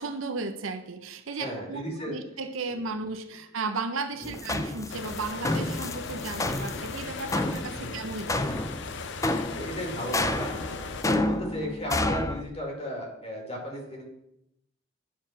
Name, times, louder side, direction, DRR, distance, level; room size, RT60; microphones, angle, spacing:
voice 1, 0.0-8.6 11.1-11.4, right 3 dB, 85° right, 7 dB, 0.8 m, -35 dB
voice 2, 1.4-2.2 2.7-3.1 4.2-4.4 7.7-8.0 9.5-10.7 11.0-14.0, equal, 30° left, 0 dB, 2.3 m, -35 dB
sound 1, 4.2-12.4, left 2 dB, 15° left, 0.5 m, -30 dB
sound 2, 4.9-11.0, left 4 dB, 65° left, 0.7 m, -38 dB
10.0 x 4.8 x 5.8 m, 0.83 s
head